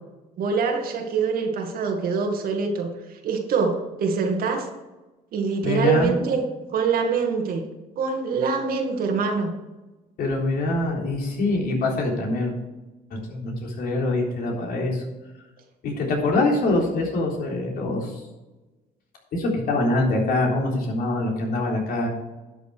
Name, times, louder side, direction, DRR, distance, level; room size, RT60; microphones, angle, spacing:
voice 1, 0.4-2.9 3.2-4.7 5.3-6.4 6.7-7.6 8.0-9.5, right 5 dB, 60° right, 3 dB, 2.1 m, -24 dB
voice 2, 5.6-6.1 10.2-12.5 13.3-15.0 15.8-18.2 19.3-22.1, left 2 dB, 65° left, -1 dB, 3.7 m, -24 dB
11.5 x 7.0 x 4.8 m, 1.1 s
cardioid pair, 110°, 17 cm